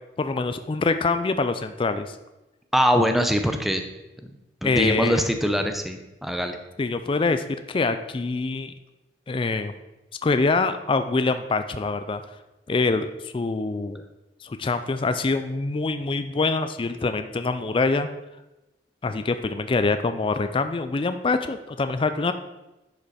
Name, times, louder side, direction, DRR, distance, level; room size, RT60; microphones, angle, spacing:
voice 1, 0.2-2.2 4.6-5.3 6.8-8.7 9.3-9.7 10.2-12.2 12.7-14.0 14.4-18.1 19.0-22.3, left 3 dB, 30° left, 9 dB, 0.4 m, -25 dB
voice 2, 2.7-3.8 4.6-6.6, equal, ahead, 6 dB, 0.7 m, -23 dB
10.5 x 5.4 x 4.2 m, 0.99 s
head